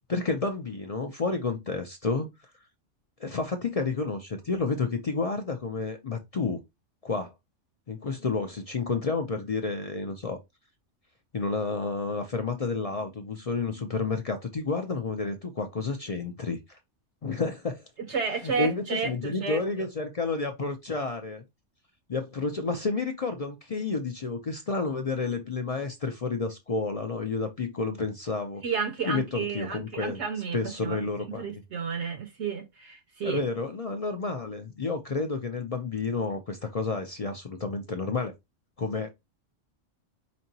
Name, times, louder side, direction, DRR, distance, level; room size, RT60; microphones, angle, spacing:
voice 1, 0.1-2.3 3.2-6.6 7.0-7.3 7.9-10.4 11.3-16.8 17.2-17.8 18.4-21.4 22.1-28.6 29.1-30.2 30.5-31.6 33.2-38.3 38.8-39.1, left 4 dB, 50° left, 0.4 m, -30 dB
voice 2, 18.1-19.6 28.6-31.1 31.4-33.4, right 6 dB, 70° right, 0.9 m, -31 dB
5.2 x 2.8 x 2.7 m
omnidirectional pair, 1.3 m